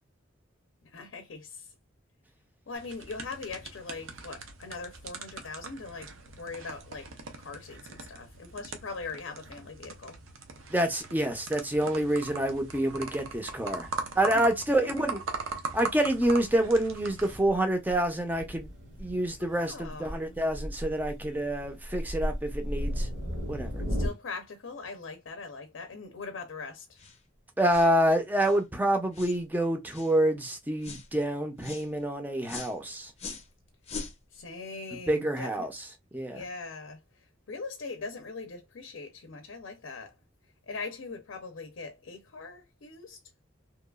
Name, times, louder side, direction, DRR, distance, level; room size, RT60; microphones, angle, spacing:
voice 1, 0.8-1.7 2.7-7.1 7.4-10.2 14.7-15.2 19.4-20.4 23.9-27.0 34.3-35.7 36.3-40.1 40.7-43.2, left 4 dB, 75° left, 0.5 m, -41 dB
sound 1, 2.7-17.4, right 4 dB, 85° right, 0.6 m, -41 dB
voice 2, 10.7-13.9 14.2-15.2 15.7-18.7 19.0-23.1 23.5-23.8 27.6-33.1 35.1-35.7 36.1-36.4, right 1 dB, 10° right, 0.4 m, -27 dB
Thunder, 16.2-24.1, equal, 65° right, 1.0 m, -36 dB
sound 2, 27.0-27.2 27.7-27.9 28.4-28.6 29.1-29.4 29.9-30.2 30.8-31.1 31.6-31.9 32.5-32.7 33.2-33.5 33.8-34.2, left 4 dB, 30° left, 0.6 m, -41 dB
2.9 x 2.3 x 2.2 m
head